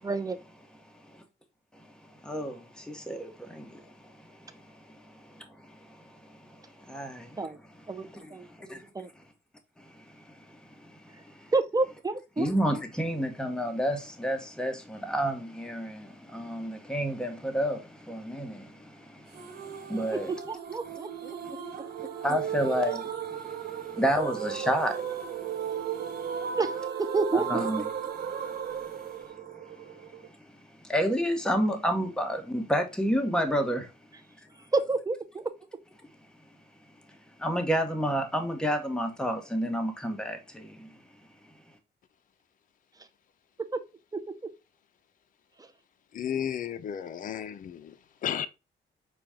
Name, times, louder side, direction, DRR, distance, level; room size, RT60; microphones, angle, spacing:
voice 1, 0.0-0.4 7.4-7.6 7.9-9.1 11.5-12.5 20.5-21.4 26.6-27.6 34.7-35.5 43.0-43.1 43.7-43.8 44.1-44.5 45.6-45.7, right 3 dB, 20° right, 0.6 m, -30 dB
voice 2, 2.2-7.4 8.2-8.3 8.6-8.8 9.8-10.4 10.8-11.5 12.4-20.3 22.2-25.1 25.4-25.5 25.9-26.1 27.5-27.8 28.4-29.4 29.9-30.3 30.8-33.9 37.4-40.9, equal, 5° left, 1.1 m, -31 dB
sound 1, 19.3-30.3, right 8 dB, 55° right, 0.9 m, -35 dB
voice 3, 46.1-48.0 48.2-48.5, left 9 dB, 45° left, 0.5 m, -33 dB
5.9 x 2.3 x 3.5 m
cardioid pair, 90°, 20 cm